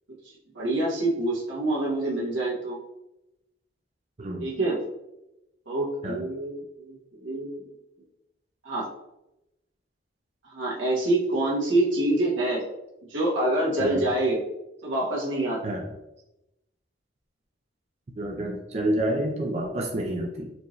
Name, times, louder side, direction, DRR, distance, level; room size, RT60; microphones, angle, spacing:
voice 1, 0.5-2.8 4.4-4.8 5.7-7.6 8.6-8.9 10.5-12.7 13.1-14.4 14.8-15.8, right 1 dB, 85° right, -4 dB, 1.3 m, -26 dB
voice 2, 18.2-20.5, right 1 dB, 35° right, -1 dB, 0.5 m, -29 dB
4.4 x 2.7 x 3.1 m, 0.90 s
head